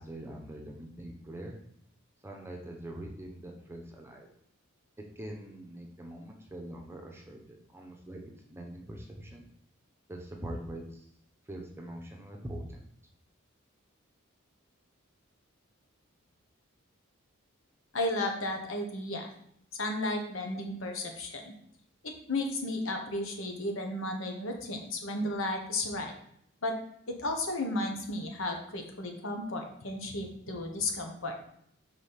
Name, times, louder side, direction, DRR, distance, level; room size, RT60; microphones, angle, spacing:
voice 1, 0.0-1.6 2.2-4.3 5.2-8.2 8.5-9.5 10.1-11.1 11.5-12.9, right 1 dB, 10° right, 1 dB, 0.8 m, -43 dB
voice 2, 17.9-19.3 19.8-21.5 22.0-26.1 26.6-26.7 27.1-31.3, left 2 dB, 65° left, 3 dB, 1.3 m, -33 dB
5.0 x 4.0 x 5.7 m, 0.70 s
head